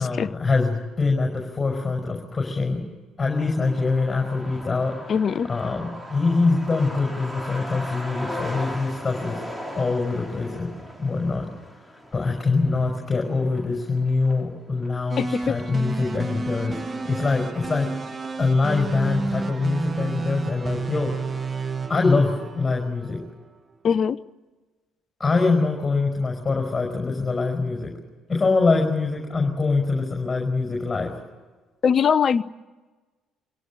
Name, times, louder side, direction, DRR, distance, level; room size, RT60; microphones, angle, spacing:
voice 1, 0.0-2.8 3.2-5.1 5.5-9.4 9.8-10.7 11.0-11.5 12.1-17.9 18.4-21.1 21.9-23.2 25.2-27.9 28.3-31.1, left 3 dB, 25° left, 1 dB, 5.5 m, -24 dB
Truck, 3.3-18.4 18.8-18.9 19.1-20.0 20.3-20.4 20.7-21.1, equal, 10° right, 3.4 m, -39 dB
voice 2, 5.1-5.5 15.2-15.6 23.8-24.2 31.8-32.4, left 7 dB, 45° left, 16 dB, 0.8 m, -21 dB
sound 1, 15.1-23.3, right 4 dB, 30° right, 1.3 m, -31 dB
25.5 x 17.5 x 9.1 m, 1.3 s
hypercardioid pair, 50°, 0 cm